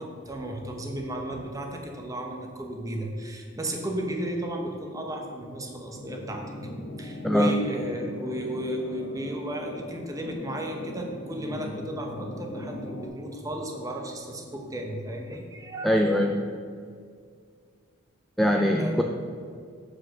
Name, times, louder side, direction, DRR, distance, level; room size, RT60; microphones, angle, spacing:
voice 1, 0.0-6.4 7.0-16.0 18.8-19.0, right 1 dB, 15° right, 1 dB, 0.9 m, -34 dB
sound 1, 5.9-13.1, left 1 dB, 75° left, 1.4 m, -39 dB
voice 2, 15.8-16.4 18.4-19.0, equal, ahead, 2 dB, 0.3 m, -22 dB
8.3 x 4.9 x 6.3 m, 2.2 s
head